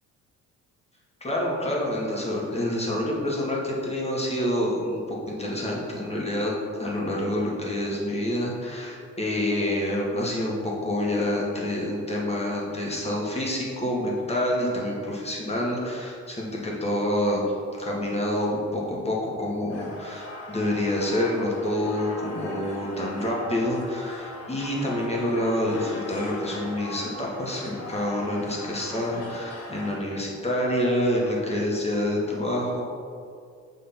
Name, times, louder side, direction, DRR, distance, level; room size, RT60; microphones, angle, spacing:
voice 1, 1.2-17.4 17.7-32.8, left 1 dB, 20° left, -3 dB, 1.7 m, -27 dB
sound 1, 19.7-30.0, left 2 dB, 50° left, 1.4 m, -40 dB
6.5 x 3.8 x 5.7 m, 2.3 s
cardioid pair, 90°, 30 cm